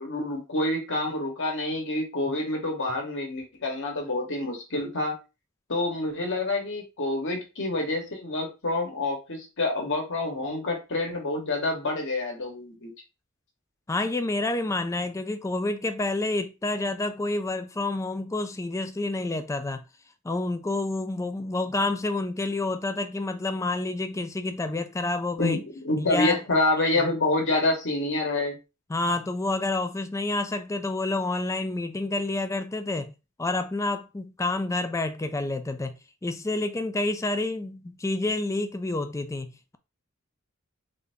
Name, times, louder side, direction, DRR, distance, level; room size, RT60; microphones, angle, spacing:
voice 1, 0.0-5.2 5.7-12.9 25.4-28.6, left 2 dB, 55° left, 1.3 m, -27 dB
voice 2, 13.9-19.8 20.2-25.6 26.0-26.4 26.9-27.1 28.9-33.1 33.4-39.8, left 2 dB, 15° left, 0.3 m, -29 dB
3.7 x 2.7 x 3.4 m
head